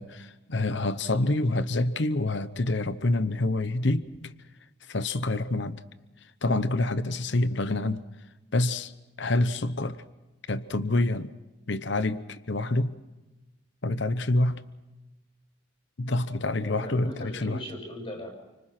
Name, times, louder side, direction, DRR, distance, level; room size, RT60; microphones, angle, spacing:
voice 1, 0.0-4.3 4.8-5.8 6.2-8.0 8.5-8.9 9.2-10.0 10.5-11.3 11.7-13.0 13.8-14.6 16.0-17.6, left 2 dB, 60° left, 0.9 m, -27 dB
voice 2, 16.6-18.3, equal, 25° left, 6.9 m, -38 dB
30.0 x 25.0 x 5.9 m
head